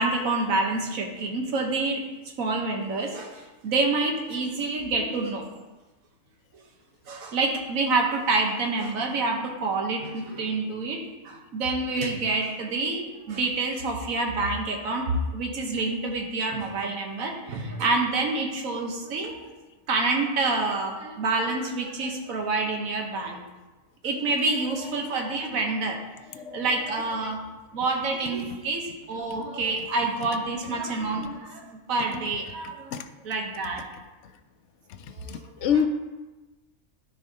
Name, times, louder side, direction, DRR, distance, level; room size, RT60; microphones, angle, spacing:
voice 1, 0.0-2.0 2.4-5.5 7.1-19.5 19.9-23.4 24.0-26.0 26.3-27.4 27.7-32.9 33.2-33.8 35.1-35.7, right 3 dB, 90° right, 2 dB, 1.4 m, -27 dB
voice 2, 24.1-25.0 25.3-25.7 26.3-27.0 32.1-32.2 32.9-33.0 35.3-35.9, left 8 dB, 70° left, 9 dB, 0.8 m, -30 dB
13.0 x 4.7 x 2.8 m, 1.2 s
omnidirectional pair, 1.4 m